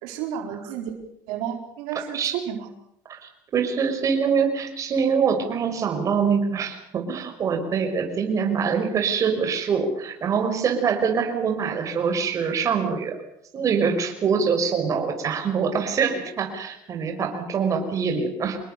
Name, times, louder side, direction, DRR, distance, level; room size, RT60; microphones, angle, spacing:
voice 1, 0.0-0.9 1.3-2.7, right 9 dB, 85° right, 2 dB, 4.4 m, -31 dB
voice 2, 3.1-13.2 13.5-18.6, right 6 dB, 45° right, 5 dB, 5.7 m, -24 dB
27.0 x 21.0 x 6.9 m, 0.73 s
cardioid pair, 110°, 8 cm